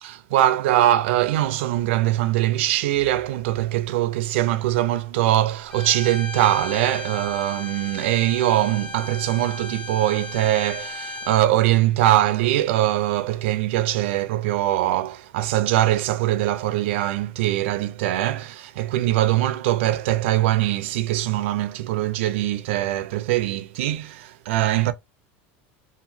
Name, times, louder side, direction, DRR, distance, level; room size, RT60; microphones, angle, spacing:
voice 1, 0.0-24.9, right 14 dB, 85° right, 0.4 m, -22 dB
Bowed string instrument, 5.7-11.4, left 3 dB, 15° left, 0.7 m, -35 dB
2.9 x 2.3 x 2.6 m
supercardioid pair, 150°, 6 cm